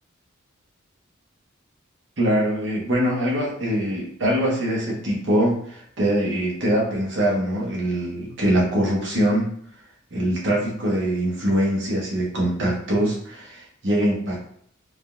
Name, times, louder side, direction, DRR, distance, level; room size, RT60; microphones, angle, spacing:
voice 1, 2.2-9.5 10.1-14.4, right 1 dB, 60° right, -4 dB, 1.0 m, -23 dB
3.6 x 2.4 x 2.3 m, 0.64 s
head